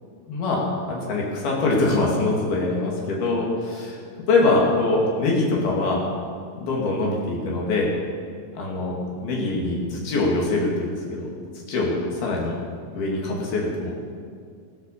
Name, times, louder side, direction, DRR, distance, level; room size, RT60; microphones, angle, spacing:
voice 1, 0.3-4.0 4.3-6.0 6.6-7.9 8.6-11.3 11.6-12.5 12.9-13.9, left 2 dB, 85° left, -3 dB, 4.3 m, -23 dB
20.5 x 8.2 x 7.3 m, 2.2 s
omnidirectional pair, 4.3 m